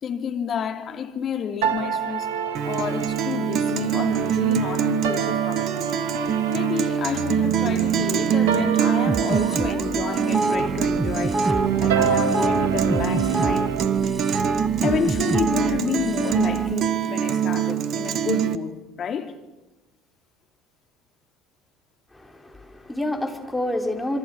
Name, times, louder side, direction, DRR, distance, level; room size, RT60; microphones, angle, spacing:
voice 1, 0.0-2.3 2.6-6.0 6.5-11.4 11.8-13.7 14.8-19.4, left 7 dB, 45° left, 3.0 m, -30 dB
sound 1, 1.6-13.8, right 7 dB, 80° right, 2.8 m, -28 dB
Guitar, 2.5-18.6, right 8 dB, 55° right, 1.5 m, -24 dB
sound 2, 9.1-16.7, right 2 dB, 15° right, 1.4 m, -27 dB
voice 2, 22.1-24.2, left 1 dB, 10° left, 4.9 m, -28 dB
26.5 x 25.5 x 6.7 m
hypercardioid pair, 65°, 0 cm